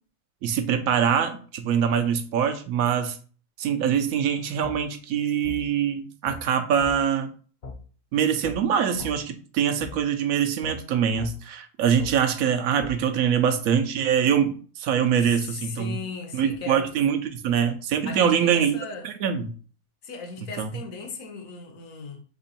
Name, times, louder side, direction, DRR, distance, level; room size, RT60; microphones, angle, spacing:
voice 1, 0.4-3.2 3.6-7.3 8.1-16.0 16.3-18.8 19.0-19.5 20.6-20.7, right 8 dB, 70° right, 1.0 m, -24 dB
sound 1, 4.6-4.8 5.4-5.6 6.3-6.4 6.8-6.9 7.6-7.8 8.4-8.6 9.0-9.1 9.8-9.9 10.6-10.8 11.2-11.3 12.0-12.1 12.8-12.9, left 2 dB, 45° left, 0.6 m, -37 dB
voice 2, 15.2-16.8 18.0-19.1 20.0-22.2, left 4 dB, 65° left, 1.2 m, -37 dB
3.7 x 3.3 x 4.1 m
omnidirectional pair, 1.6 m